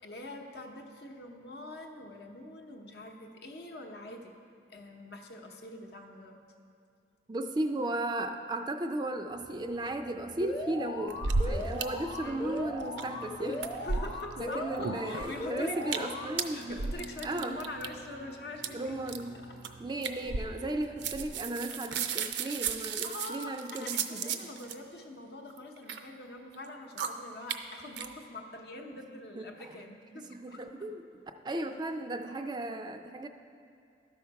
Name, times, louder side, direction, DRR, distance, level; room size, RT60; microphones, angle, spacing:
voice 1, 0.0-4.3 4.7-6.4 12.2-12.6 13.8-16.2 16.5-18.9 19.3-19.6 21.7-21.9 23.0-30.7, left 1 dB, 65° left, 3 dB, 0.8 m, -44 dB
voice 2, 7.3-13.7 14.4-16.8 17.2-17.7 18.7-19.4 19.8-24.3 28.9-29.0 29.4-29.5 30.3-31.0 31.4-33.3, right 1 dB, 25° right, 6 dB, 0.3 m, -35 dB
sound 1, 9.3-21.5, right 1 dB, 85° left, 1.0 m, -52 dB
Alarm, 10.4-16.4, left 1 dB, 25° left, 0.7 m, -38 dB
sound 2, 11.1-11.8 12.1-12.2 12.5-13.3 13.5-14.4 14.8-15.4 15.8-16.1 16.4-17.9 18.6-18.7 19.1-19.3 19.6-19.7 20.0-20.8 21.0-24.7 25.5-26.0 26.5-26.7 27.0-27.1 27.5-27.6 28.0-28.1, right 5 dB, 80° right, 0.5 m, -33 dB
12.5 x 5.7 x 4.6 m, 2.4 s
head